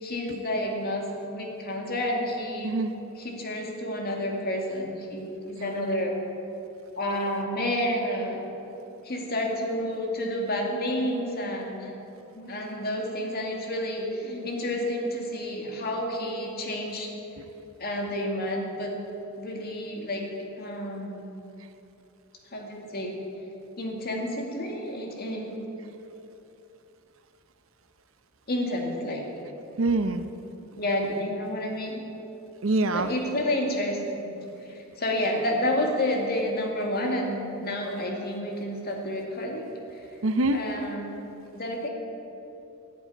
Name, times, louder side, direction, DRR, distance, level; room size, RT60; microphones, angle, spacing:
voice 1, 0.0-2.8 3.2-6.2 7.0-8.4 9.0-11.9 12.4-17.1 17.8-19.0 19.4-21.2 22.5-23.2 23.8-25.6 28.5-29.3 30.7-32.0 32.9-34.3 34.7-39.7 39.9-40.0 40.5-41.1 41.4-41.9, left 1 dB, 50° left, 1 dB, 2.2 m, -30 dB
voice 2, 29.8-30.2 32.6-33.1 40.2-40.6, right 2 dB, 70° right, 9 dB, 0.8 m, -24 dB
13.0 x 7.8 x 9.7 m, 2.9 s
head